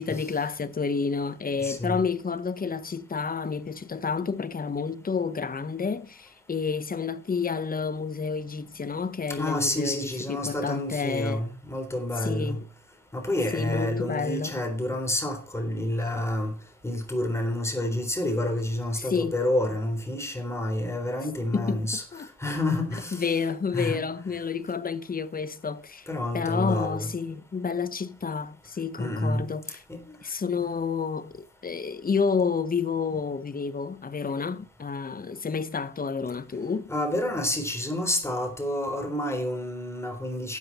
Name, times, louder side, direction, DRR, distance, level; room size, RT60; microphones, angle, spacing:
voice 1, 0.0-11.4 12.2-12.7 13.5-14.5 19.0-19.3 21.5-22.3 23.1-26.1 26.3-29.8 30.2-36.9, left 5 dB, 30° left, 1.0 m, -30 dB
voice 2, 1.6-2.0 9.3-12.6 13.1-16.5 16.8-22.0 22.4-23.3 23.7-24.0 26.1-27.1 29.0-29.4 29.9-30.0 36.9-40.6, left 1 dB, 10° left, 3.8 m, -29 dB
12.5 x 8.0 x 4.2 m
cardioid pair, 90°, 30 cm